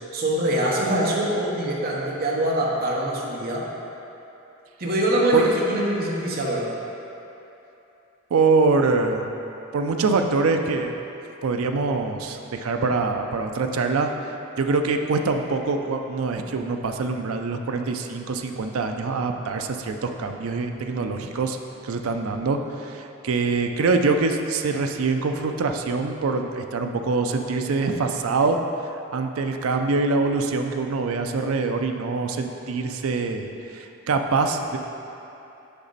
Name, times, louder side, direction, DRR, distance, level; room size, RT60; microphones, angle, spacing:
voice 1, 0.1-3.7 4.8-6.7, right 1 dB, 45° right, -3 dB, 0.9 m, -24 dB
voice 2, 8.3-9.3 9.7-10.9 11.4-14.1 14.6-21.6 21.8-28.6 28.9-34.8, right 3 dB, 75° right, 5 dB, 0.4 m, -24 dB
6.8 x 5.0 x 4.0 m, 2.9 s
head